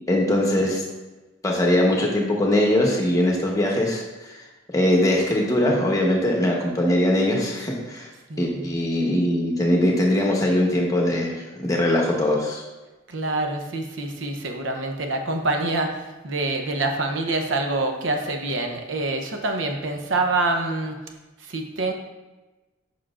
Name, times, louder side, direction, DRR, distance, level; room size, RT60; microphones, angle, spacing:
voice 1, 0.1-0.8 1.4-4.4 4.7-8.1 8.4-11.4 11.6-12.6, left 1 dB, 15° left, -1 dB, 0.9 m, -21 dB
voice 2, 8.3-8.7 13.1-21.0 21.4-21.9, right 2 dB, 70° right, 4 dB, 0.8 m, -26 dB
7.0 x 6.1 x 2.5 m, 1.1 s
head